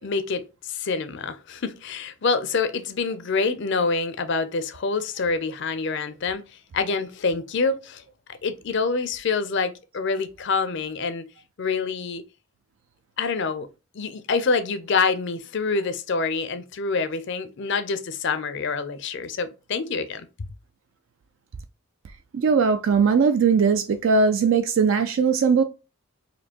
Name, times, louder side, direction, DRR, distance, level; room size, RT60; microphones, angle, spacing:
voice 1, 0.0-6.4 6.7-8.0 8.4-11.2 11.6-12.2 13.2-13.7 13.9-20.3, left 4 dB, 50° left, 0.5 m, -26 dB
voice 2, 22.3-25.6, right 5 dB, 60° right, 0.3 m, -19 dB
4.2 x 2.7 x 2.9 m
head